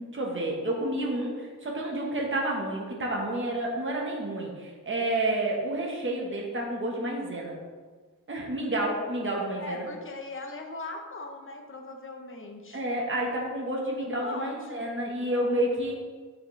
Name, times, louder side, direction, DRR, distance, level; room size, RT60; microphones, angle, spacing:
voice 1, 0.0-7.6 8.3-9.9 12.7-15.9, right 1 dB, 35° right, -2 dB, 1.2 m, -30 dB
voice 2, 9.6-12.8 14.0-14.7, left 2 dB, 35° left, 2 dB, 0.9 m, -39 dB
7.7 x 6.3 x 3.2 m, 1.5 s
wide cardioid pair, 170°, 35 cm